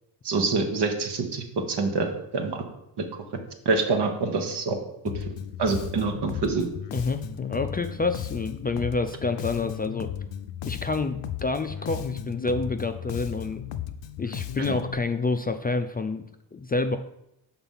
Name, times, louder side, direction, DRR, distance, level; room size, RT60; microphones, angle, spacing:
voice 1, 0.2-2.6 3.0-3.1 3.6-4.8 5.6-6.7, right 4 dB, 70° right, 4 dB, 1.2 m, -26 dB
Bass guitar, 5.1-14.9, left 10 dB, 80° left, 0.6 m, -35 dB
voice 2, 6.9-10.1 10.7-13.6 14.2-17.0, left 3 dB, 25° left, 7 dB, 0.4 m, -28 dB
5.7 x 4.0 x 5.6 m, 0.82 s
cardioid pair, 70°, 43 cm